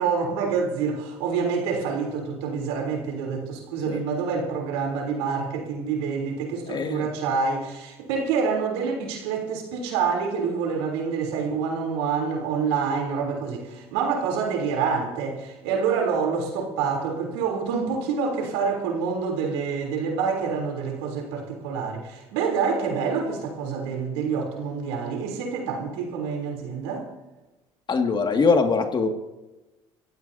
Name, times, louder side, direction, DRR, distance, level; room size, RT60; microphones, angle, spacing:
voice 1, 0.0-27.1, right 5 dB, 90° right, 1 dB, 3.5 m, -27 dB
voice 2, 6.7-7.1 27.9-29.1, left 4 dB, 35° left, 5 dB, 2.1 m, -22 dB
27.0 x 15.0 x 2.8 m, 1.1 s
supercardioid pair, 80°, 13 cm